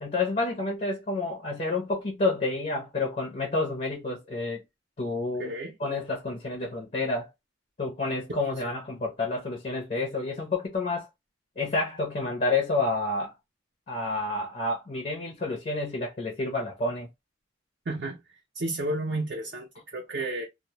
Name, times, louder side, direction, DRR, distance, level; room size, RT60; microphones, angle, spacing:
voice 1, 0.0-4.6 5.0-5.5 5.8-7.3 7.8-11.1 11.6-13.3 13.9-17.1, left 3 dB, 40° left, 0.5 m, -29 dB
voice 2, 5.4-5.8 8.6-8.7 17.9-20.4, right 2 dB, 50° right, 0.5 m, -32 dB
2.1 x 2.0 x 2.8 m
head